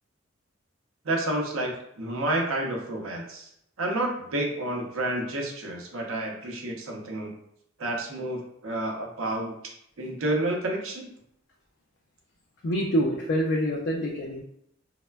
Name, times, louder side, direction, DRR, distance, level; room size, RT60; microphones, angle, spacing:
voice 1, 1.0-3.5 3.8-7.3 7.8-9.5 10.0-11.1, right 1 dB, 80° right, 0 dB, 0.6 m, -30 dB
voice 2, 12.6-14.4, equal, 55° left, -2 dB, 0.3 m, -26 dB
3.2 x 2.1 x 2.2 m, 0.73 s
head